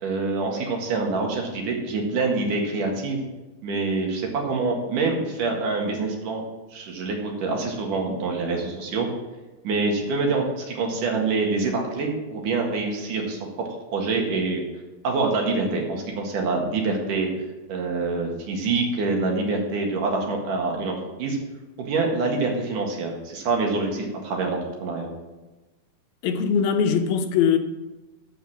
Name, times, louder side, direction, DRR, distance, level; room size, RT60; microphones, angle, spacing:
voice 1, 0.0-3.2 3.6-6.4 6.7-9.1 9.6-13.4 13.9-14.6 15.0-17.3 17.7-21.4 21.8-25.1, right 3 dB, 65° right, 3.1 m, -26 dB
voice 2, 26.2-27.6, left 7 dB, 80° left, 2.7 m, -21 dB
13.5 x 5.3 x 6.2 m
omnidirectional pair, 4.2 m